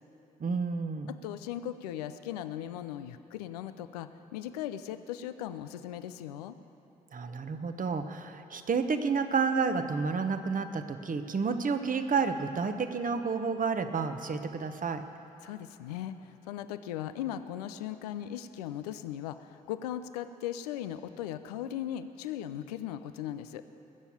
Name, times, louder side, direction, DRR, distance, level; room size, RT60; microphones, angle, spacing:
voice 1, 0.4-1.1 7.1-15.1, right 5 dB, 45° right, 8 dB, 1.1 m, -30 dB
voice 2, 1.1-6.5 15.4-23.6, left 11 dB, 90° left, 11 dB, 0.5 m, -38 dB
19.5 x 7.1 x 8.5 m, 3.0 s
hypercardioid pair, 40°, 20 cm